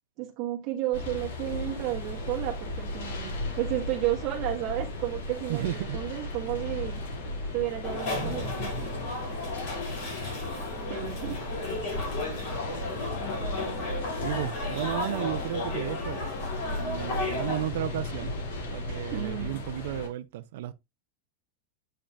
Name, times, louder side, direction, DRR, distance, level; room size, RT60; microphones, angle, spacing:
voice 1, 0.2-7.0 7.5-8.9 10.9-11.4 19.1-19.6, right 14 dB, 35° right, 1.5 m, -32 dB
sound 1, 0.9-20.1, left 2 dB, 85° left, 2.3 m, -36 dB
voice 2, 5.5-6.0 14.2-16.3 16.8-18.3 18.7-20.7, right 14 dB, 60° right, 0.5 m, -33 dB
sound 2, 7.8-17.7, left 3 dB, 45° left, 3.6 m, -34 dB
8.6 x 5.4 x 2.5 m
supercardioid pair, 175°, 0 cm